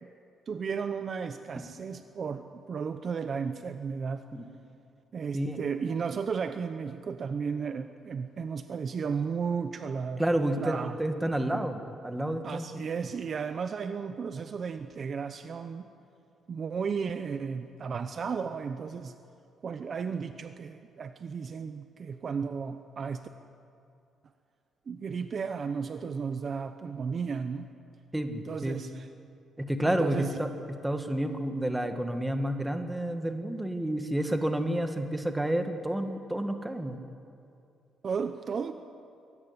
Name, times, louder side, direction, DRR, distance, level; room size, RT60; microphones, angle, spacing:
voice 1, 0.5-4.3 5.1-10.2 10.5-11.3 12.4-15.9 16.5-19.1 19.6-23.3 24.9-27.7 28.4-29.1 29.8-30.4 38.0-38.7, right 6 dB, 40° right, 9 dB, 0.8 m, -34 dB
voice 2, 10.2-12.8 28.1-28.8 29.6-37.0, right 1 dB, 5° right, 6 dB, 1.6 m, -30 dB
23.5 x 17.0 x 9.8 m, 2.5 s
cardioid pair, 155°, 0 cm